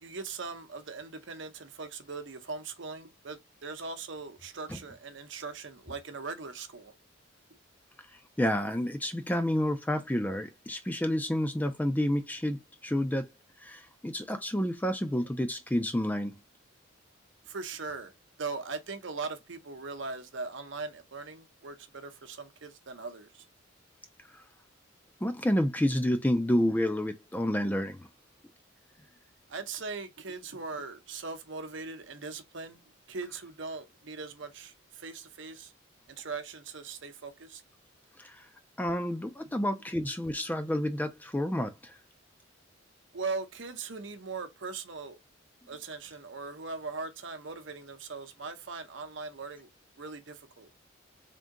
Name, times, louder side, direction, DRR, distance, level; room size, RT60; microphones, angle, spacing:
voice 1, 0.0-6.9 17.5-18.1 18.4-23.5 29.5-32.8 33.1-35.7 36.2-37.6 39.4-39.6 43.1-45.2 45.7-49.7 50.0-50.7, right 4 dB, 65° right, 0.8 m, -40 dB
voice 2, 8.4-13.3 13.6-16.3 25.2-28.1 38.2-38.5 38.8-42.0, left 1 dB, 10° left, 0.4 m, -29 dB
3.7 x 2.7 x 3.6 m
head